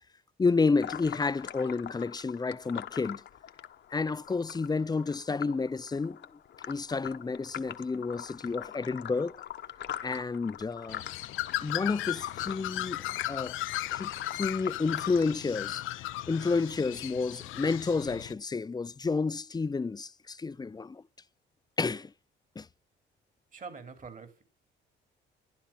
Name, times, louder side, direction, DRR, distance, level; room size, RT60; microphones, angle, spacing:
voice 1, 0.4-3.2 3.9-6.2 6.7-9.4 10.0-11.0 11.6-13.6 13.9-15.8 16.3-21.0 21.8-22.1 22.6-22.7, left 4 dB, 20° left, 0.6 m, -30 dB
sound 1, 0.8-16.0, left 10 dB, 65° left, 1.2 m, -44 dB
Bird, 10.9-18.3, left 16 dB, 85° left, 0.6 m, -36 dB
voice 2, 23.5-24.4, right 5 dB, 40° right, 3.2 m, -44 dB
13.0 x 11.5 x 5.8 m
cardioid pair, 90°, 20 cm